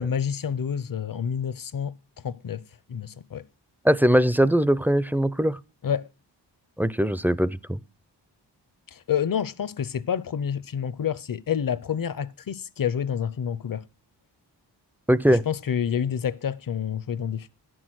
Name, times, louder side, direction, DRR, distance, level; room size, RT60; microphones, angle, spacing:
voice 1, 0.0-1.9 2.2-2.6 2.9-3.4 5.8-6.1 8.9-13.8 15.3-17.5, left 8 dB, 50° left, 0.7 m, -28 dB
voice 2, 3.8-5.6 6.8-7.8 15.1-15.4, equal, 5° right, 0.4 m, -21 dB
10.5 x 6.3 x 6.3 m
cardioid pair, 55°, 43 cm